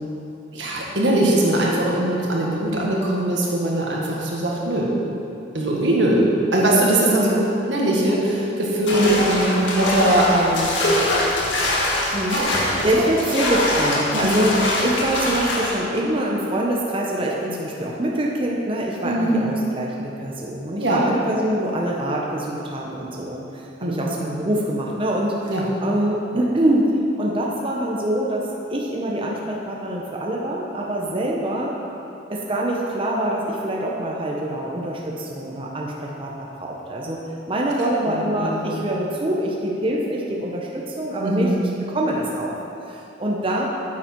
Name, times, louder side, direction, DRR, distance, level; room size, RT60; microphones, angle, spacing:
voice 1, 0.5-4.9 5.5-6.2 6.5-7.3 7.7-10.7 12.3-12.5 13.0-13.1 14.1-14.4 19.0-19.5 20.8-21.0 23.8-24.2 25.5-25.7 38.1-38.8 41.2-41.6, right 1 dB, 80° right, -3 dB, 1.7 m, -21 dB
voice 2, 7.2-7.5 9.0-9.2 12.1-14.6 14.8-25.5 25.8-26.9 27.2-31.7 32.3-37.2 37.5-41.5 41.8-42.5 42.9-43.7, right 1 dB, 30° right, -3 dB, 0.8 m, -25 dB
sound 1, 8.9-15.8, left 1 dB, 85° left, 1.8 m, -23 dB
8.9 x 8.5 x 4.5 m, 2.9 s
head